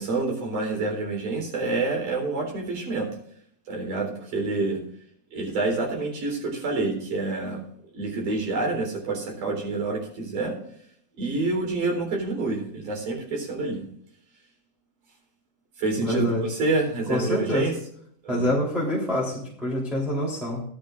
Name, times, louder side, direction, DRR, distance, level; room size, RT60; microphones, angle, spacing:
voice 1, 0.0-3.1 3.7-4.8 5.3-7.6 7.9-10.6 11.2-13.8 15.8-17.7 18.2-18.5, right 3 dB, 60° right, 1 dB, 5.3 m, -27 dB
voice 2, 16.0-16.5 17.1-17.7 18.3-20.6, left 1 dB, ahead, -6 dB, 3.0 m, -26 dB
17.5 x 12.5 x 2.6 m, 0.67 s
omnidirectional pair, 4.2 m